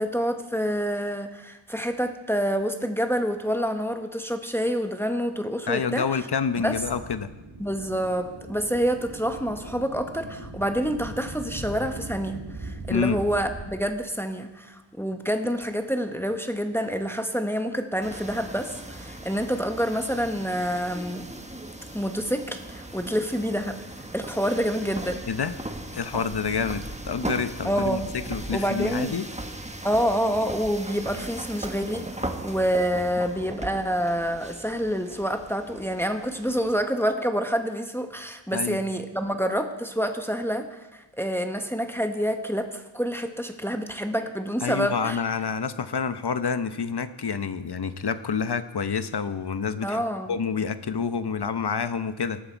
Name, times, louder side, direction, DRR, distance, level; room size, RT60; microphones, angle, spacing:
voice 1, 0.0-6.1 6.6-6.8 7.6-21.3 21.9-23.8 24.1-25.2 27.6-28.1 28.5-29.2 29.8-45.2 49.8-50.4, equal, 5° left, 6 dB, 1.2 m, -27 dB
voice 2, 5.7-7.3 12.9-13.2 25.3-25.6 25.9-28.0 28.3-29.3 38.5-38.8 44.6-50.0 50.3-52.4, left 6 dB, 60° left, 11 dB, 0.9 m, -28 dB
sound 1, 6.5-13.7, right 2 dB, 65° right, 2.5 m, -40 dB
sound 2, 18.0-36.8, right 1 dB, 15° right, 1.3 m, -38 dB
18.5 x 13.0 x 4.6 m, 1.1 s
wide cardioid pair, 65°, 46 cm